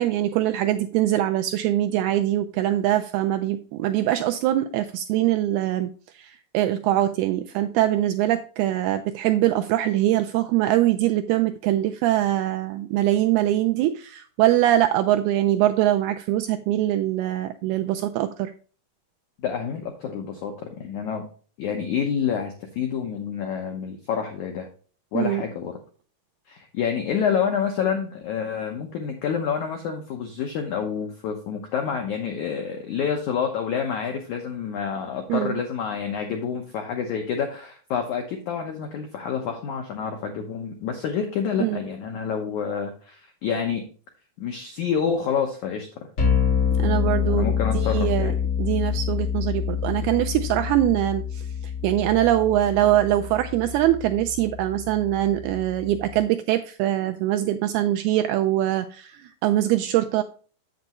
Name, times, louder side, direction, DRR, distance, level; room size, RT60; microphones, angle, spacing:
voice 1, 0.0-18.5 25.1-25.4 35.3-35.6 41.6-41.8 46.8-48.3 48.6-60.2, right 13 dB, 85° right, 7 dB, 2.2 m, -23 dB
voice 2, 19.4-21.3 21.6-24.7 25.1-25.8 26.5-43.8 44.4-45.9 47.3-48.3, left 7 dB, 85° left, 3 dB, 1.7 m, -28 dB
sound 1, 46.2-56.2, left 7 dB, 30° left, 4.2 m, -27 dB
8.0 x 7.9 x 3.0 m, 0.40 s
omnidirectional pair, 4.9 m